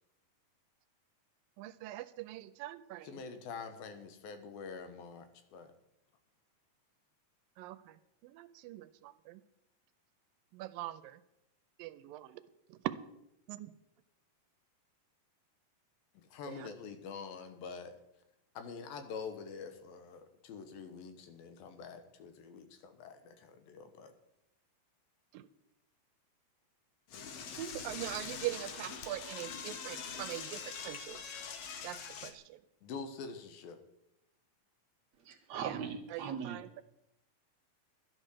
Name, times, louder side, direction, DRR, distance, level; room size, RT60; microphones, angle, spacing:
voice 1, 1.6-3.1 7.6-8.0 8.2-9.4 10.5-11.2 11.8-12.4 12.7-12.9 13.5-13.7 16.4-16.7 25.3-25.5 27.6-31.2 31.8-32.6 35.6-35.8 36.1-36.8, right 15 dB, 85° right, 13 dB, 2.3 m, -42 dB
voice 2, 3.0-5.7 16.1-18.0 18.5-24.1 32.8-33.8, left 5 dB, 85° left, 8 dB, 3.1 m, -46 dB
Door / Toilet flush, 27.1-32.3, left 6 dB, 60° left, 1.7 m, -43 dB
voice 3, 35.2-36.6, right 7 dB, 60° right, 2 dB, 2.2 m, -40 dB
12.0 x 10.5 x 6.4 m, 0.85 s
omnidirectional pair, 4.0 m